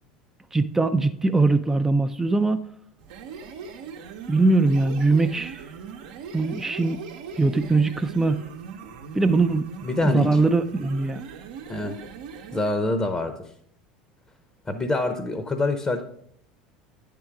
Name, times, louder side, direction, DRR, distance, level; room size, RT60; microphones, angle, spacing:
voice 1, 0.5-2.6 4.3-5.6 6.3-7.0 7.4-8.4 9.1-9.7 10.0-11.2, right 3 dB, 10° right, 0.4 m, -21 dB
sound 1, 3.0-12.8, right 6 dB, 70° right, 0.8 m, -40 dB
voice 2, 9.8-10.4 11.7-12.0 12.5-13.3 14.7-16.0, left 2 dB, 20° left, 0.7 m, -25 dB
9.4 x 3.8 x 4.6 m
hypercardioid pair, 80°, 4 cm